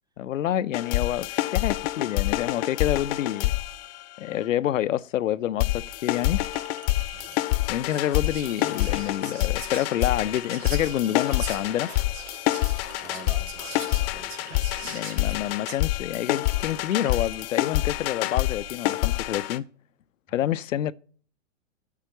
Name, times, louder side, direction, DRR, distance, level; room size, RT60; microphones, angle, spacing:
voice 1, 0.2-3.5 4.2-6.4 7.7-11.9 14.8-19.7 20.3-20.9, left 11 dB, 85° left, 0.6 m, -28 dB
sound 1, 0.7-4.5 5.6-19.6, left 17 dB, 50° left, 0.8 m, -27 dB
Chink clink, 6.4-7.4 8.2-9.1 10.4-11.6 12.5-13.7 14.4-15.4 16.4-17.5, right 12 dB, 60° right, 1.3 m, -48 dB
Whispering, 7.1-7.2 7.6-15.8, right 5 dB, 85° right, 2.7 m, -42 dB
voice 2, 13.0-14.7 20.3-20.4, right 3 dB, 10° right, 1.1 m, -47 dB
8.3 x 5.7 x 7.6 m
hypercardioid pair, 110°, 38 cm